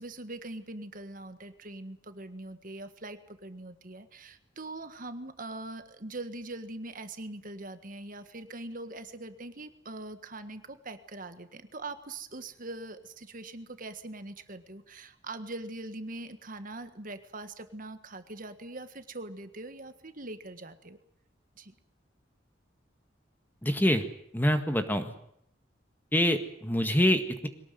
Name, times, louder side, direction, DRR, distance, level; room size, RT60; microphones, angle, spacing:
voice 1, 0.0-21.0 21.6-21.7, right 2 dB, 45° right, 10 dB, 1.6 m, -42 dB
voice 2, 23.6-24.1 24.3-25.1 26.1-27.5, equal, 10° left, 7 dB, 1.8 m, -25 dB
22.5 x 19.0 x 9.4 m, 0.70 s
head